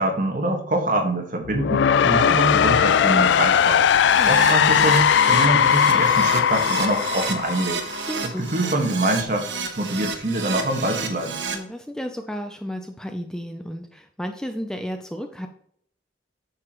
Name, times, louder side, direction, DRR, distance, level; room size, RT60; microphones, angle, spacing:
voice 1, 0.0-3.8 4.2-7.8 8.2-9.5 9.8-11.4, right 1 dB, 45° right, 4 dB, 1.6 m, -25 dB
sound 1, 1.4-8.4, left 8 dB, 70° left, 0.3 m, -19 dB
voice 2, 4.0-4.3 8.1-8.4 11.5-15.5, equal, 5° left, 5 dB, 0.5 m, -33 dB
Keyboard (musical), 4.0-11.5, right 5 dB, 75° right, 1.3 m, -31 dB
9.6 x 6.8 x 3.1 m, 0.65 s
head